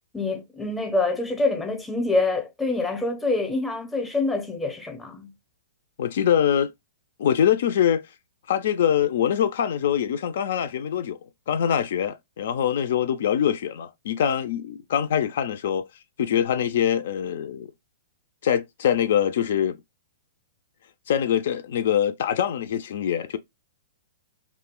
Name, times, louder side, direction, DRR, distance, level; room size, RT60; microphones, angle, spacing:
voice 1, 0.1-5.3, left 3 dB, 5° left, 0.6 m, -26 dB
voice 2, 6.0-6.7 7.2-8.0 8.5-11.2 11.5-15.9 16.2-17.7 18.4-19.8 21.1-23.4, left 9 dB, 65° left, 0.4 m, -23 dB
2.3 x 2.1 x 3.6 m
hypercardioid pair, 130°, 0 cm